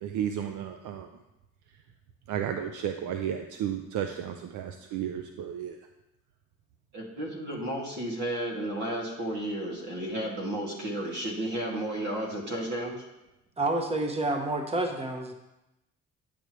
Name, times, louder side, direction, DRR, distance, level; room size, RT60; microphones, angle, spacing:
voice 1, 0.0-1.1 2.3-5.8, right 9 dB, 90° right, 6 dB, 0.6 m, -33 dB
voice 2, 6.9-13.0, right 1 dB, 70° right, -2 dB, 2.4 m, -33 dB
voice 3, 13.6-15.3, right 2 dB, 20° right, 4 dB, 0.9 m, -29 dB
10.5 x 6.8 x 3.1 m, 0.94 s
cardioid pair, 90°, 30 cm